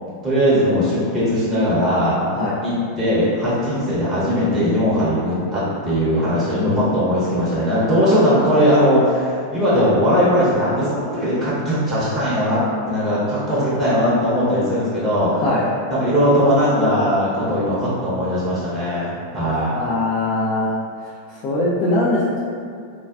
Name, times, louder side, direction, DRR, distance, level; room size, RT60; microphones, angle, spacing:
voice 1, 0.2-2.2 2.6-12.6 12.9-15.4 15.9-19.8, equal, 15° right, -10 dB, 0.8 m, -19 dB
voice 2, 15.3-15.7 19.5-20.7 21.3-22.4, left 2 dB, 40° left, -7 dB, 0.4 m, -22 dB
3.5 x 2.3 x 2.3 m, 2.2 s
figure-of-eight pair, 90°, 0 cm